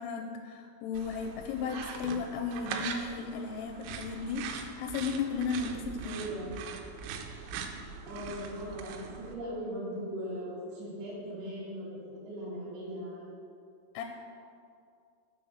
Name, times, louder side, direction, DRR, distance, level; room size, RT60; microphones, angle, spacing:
voice 1, 0.0-6.2 13.9-14.0, left 5 dB, 85° left, 4 dB, 3.0 m, -35 dB
sound 1, 1.0-9.4, right 6 dB, 90° right, 3.3 m, -41 dB
voice 2, 6.0-6.6 8.1-12.0 12.2-13.3, equal, 65° right, -9 dB, 3.6 m, -39 dB
7.3 x 6.6 x 6.2 m, 2.4 s
omnidirectional pair, 5.8 m